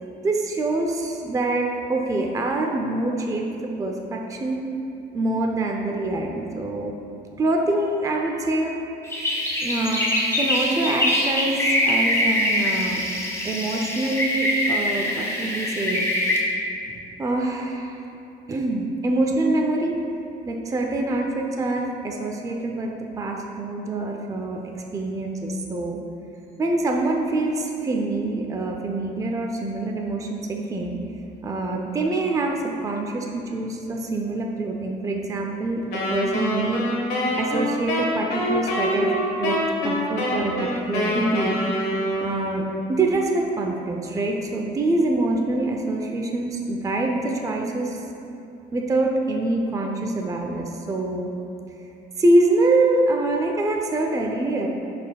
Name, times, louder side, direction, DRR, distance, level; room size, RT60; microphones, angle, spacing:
voice 1, 0.2-3.4 3.8-4.6 5.1-7.0 7.4-8.7 9.6-10.0 10.4-11.6 11.8-13.0 13.4-16.1 17.2-17.9 18.5-20.0 20.5-24.6 24.9-26.0 26.6-31.0 31.4-32.6 32.8-36.8 37.4-39.1 39.4-39.5 39.8-40.5 40.9-41.6 42.2-42.6 42.9-47.9 48.7-51.3 52.2-54.7, right 2 dB, 20° right, 1 dB, 0.5 m, -25 dB
sound 1, 9.0-16.4, left 1 dB, 15° left, 1.2 m, -24 dB
Wind instrument woodwind instrument, 35.9-42.8, equal, 75° left, 1.3 m, -25 dB
11.0 x 4.2 x 2.3 m, 2.8 s
cardioid pair, 110°, 17 cm